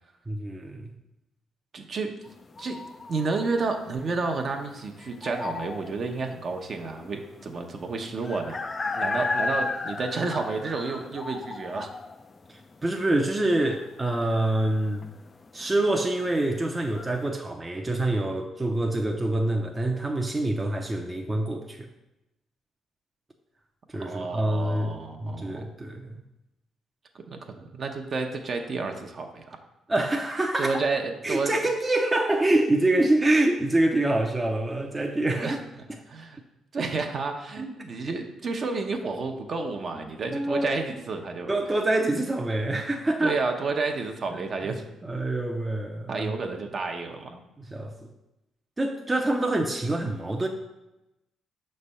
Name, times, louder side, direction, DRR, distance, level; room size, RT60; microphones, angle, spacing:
voice 1, 0.3-0.9 12.5-15.0 15.5-21.9 23.9-26.2 29.9-30.8 31.2-35.6 37.6-37.7 39.9-40.8 41.5-43.4 44.3-44.8 45.0-46.3 47.6-47.9 48.8-50.5, right 1 dB, 20° right, 2 dB, 0.6 m, -26 dB
voice 2, 1.7-2.1 2.6-2.8 3.1-8.6 8.9-11.9 24.0-25.7 27.3-29.6 30.6-31.5 35.4-35.6 36.1-36.4 36.7-41.5 43.2-44.8 46.1-47.4, right 4 dB, 50° right, 4 dB, 0.8 m, -30 dB
sound 1, 2.2-17.3, left 3 dB, 35° left, 0.4 m, -35 dB
6.1 x 3.3 x 5.5 m, 0.94 s
cardioid pair, 90°, 0 cm